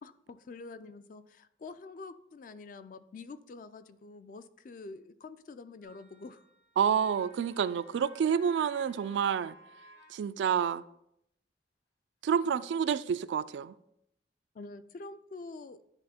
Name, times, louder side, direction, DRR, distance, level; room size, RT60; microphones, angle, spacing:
voice 1, 0.0-6.5 14.5-15.8, left 3 dB, 50° left, 0.4 m, -46 dB
sound 1, 5.8-10.3, left 1 dB, 70° left, 1.9 m, -58 dB
voice 2, 6.8-9.6 10.1-10.8 12.2-13.7, right 7 dB, 90° right, 0.3 m, -28 dB
9.9 x 3.6 x 4.2 m
head